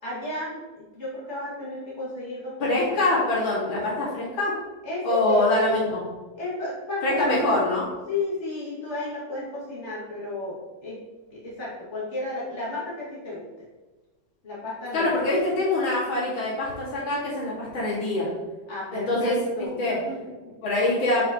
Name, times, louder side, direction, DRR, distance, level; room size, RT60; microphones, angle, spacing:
voice 1, 0.0-3.0 4.8-5.8 6.4-7.6 8.1-11.0 11.3-13.4 14.4-15.2 18.7-20.5, left 2 dB, 35° left, -8 dB, 2.8 m, -33 dB
voice 2, 2.6-4.5 5.0-6.0 7.0-7.8 14.9-18.3 18.9-19.3 19.8-20.0 20.6-21.3, left 2 dB, 80° left, -8 dB, 3.2 m, -24 dB
8.6 x 5.2 x 3.2 m, 1.2 s
omnidirectional pair, 2.1 m